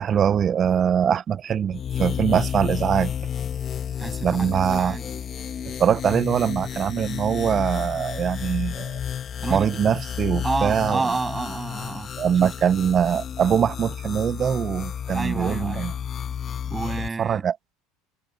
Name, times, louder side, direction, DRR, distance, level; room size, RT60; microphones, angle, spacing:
voice 1, 0.0-3.1 4.2-5.0 5.8-9.0 9.5-11.0 12.2-15.9 17.2-17.6, right 8 dB, 40° right, 0.7 m, -22 dB
sound 1, 1.7-17.1, left 8 dB, 40° left, 1.7 m, -31 dB
voice 2, 4.0-5.1 9.4-9.7 10.4-12.1 12.4-12.5 15.1-15.9 16.7-17.5, right 3 dB, 20° right, 7.7 m, -29 dB
hypercardioid pair, 85°, 0 cm